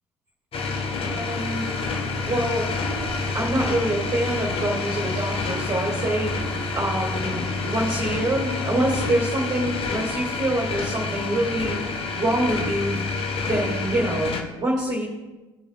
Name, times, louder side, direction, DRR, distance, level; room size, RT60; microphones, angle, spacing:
sound 1, 0.5-14.4, left 4 dB, 35° left, 1.4 m, -28 dB
voice 1, 1.0-1.6 2.2-2.7 3.1-11.8 12.1-13.0 13.5-15.1, right 1 dB, 25° right, -4 dB, 2.5 m, -26 dB
18.5 x 6.9 x 2.6 m, 1.1 s
figure-of-eight pair, 65°, 16 cm